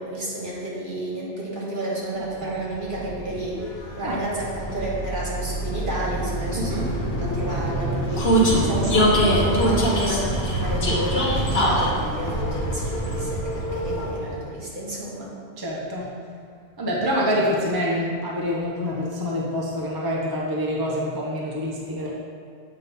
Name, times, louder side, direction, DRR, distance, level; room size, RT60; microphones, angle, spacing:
voice 1, 0.0-15.3, right 1 dB, 55° right, -6 dB, 1.7 m, -31 dB
voice 2, 2.1-2.6 4.0-4.2 6.5-6.9 14.0-14.4 15.6-16.1 16.8-22.1, equal, 25° right, -4 dB, 0.6 m, -27 dB
Vehicle, 2.5-14.4, equal, 80° left, 1.3 m, -24 dB
7.7 x 2.8 x 5.3 m, 2.1 s
omnidirectional pair, 1.0 m